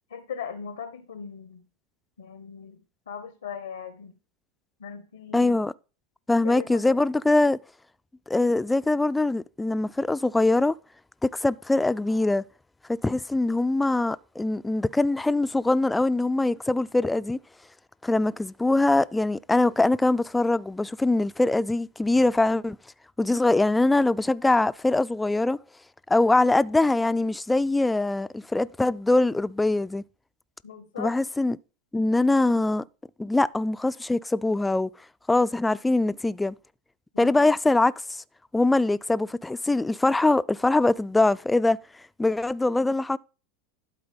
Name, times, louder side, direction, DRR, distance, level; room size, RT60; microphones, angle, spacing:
voice 1, 0.1-1.6 2.2-2.8 3.1-4.1 4.8-5.6 6.4-7.0 30.6-31.1 37.1-37.5, left 7 dB, 85° left, 0.8 m, -38 dB
voice 2, 5.3-5.7 6.3-7.6 8.3-10.7 11.2-12.4 12.9-17.4 18.0-22.8 23.2-25.6 26.1-30.0 31.0-31.6 31.9-32.8 33.2-34.9 35.3-36.5 37.2-37.9 38.5-41.8 42.2-43.2, left 2 dB, 10° left, 0.3 m, -23 dB
11.5 x 3.9 x 5.1 m
hypercardioid pair, 90°, 0 cm